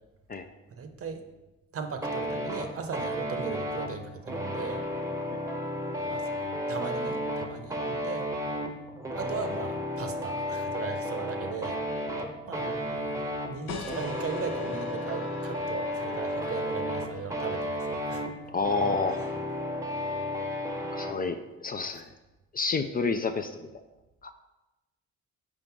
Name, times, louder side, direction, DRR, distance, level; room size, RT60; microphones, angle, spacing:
voice 1, 0.7-1.2 1.7-4.8 6.1-6.3 6.7-8.3 9.1-11.8 12.5-18.3 19.2-19.3, right 6 dB, 50° right, 6 dB, 0.8 m, -38 dB
sound 1, 2.0-21.2, left 1 dB, 10° right, 0.8 m, -33 dB
voice 2, 12.6-12.9 18.5-19.2 20.9-22.1 22.5-23.7 24.2-24.3, left 4 dB, 30° left, 7 dB, 0.4 m, -30 dB
sound 2, 13.7-18.9, left 3 dB, 90° left, 0.9 m, -43 dB
5.1 x 3.8 x 5.8 m, 1.0 s
cardioid pair, 90°, 30 cm